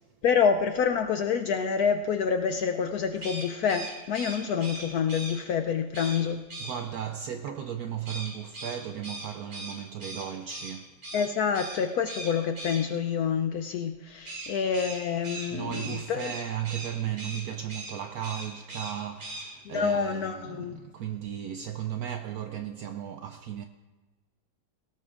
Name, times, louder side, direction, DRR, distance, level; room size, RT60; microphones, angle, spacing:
voice 1, 0.2-6.4 11.1-16.3 19.7-20.8, left 6 dB, 70° left, 0.9 m, -27 dB
sound 1, 3.2-5.3 5.9-6.2 6.5-6.8 8.1-10.7 11.0-11.3 11.5-11.8 12.1-12.8 14.3-16.9 17.2-17.4 17.7-17.9 18.2-18.9 19.2-19.4, right 2 dB, 50° right, 3.4 m, -39 dB
voice 2, 6.6-11.0 15.5-23.7, right 10 dB, 75° right, 0.8 m, -35 dB
18.0 x 17.5 x 2.5 m
omnidirectional pair, 2.1 m